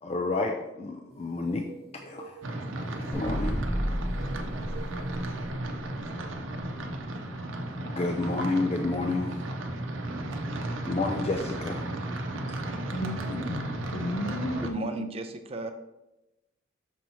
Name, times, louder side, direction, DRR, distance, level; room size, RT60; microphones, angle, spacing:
voice 1, 0.0-1.7 2.0-2.4 3.0-3.6 7.8-9.4 10.9-11.9, left 3 dB, 30° left, 3 dB, 0.4 m, -30 dB
sound 1, 1.1-7.5, right 4 dB, 50° right, 1.0 m, -50 dB
sound 2, 2.4-14.7, right 1 dB, 85° right, 0.7 m, -34 dB
sound 3, 3.1-5.8, equal, 10° left, 1.0 m, -32 dB
voice 2, 12.8-15.1, equal, 70° left, 5 dB, 0.7 m, -34 dB
voice 3, 14.6-15.7, right 2 dB, 30° right, 7 dB, 0.4 m, -35 dB
6.2 x 2.9 x 5.4 m, 0.94 s
head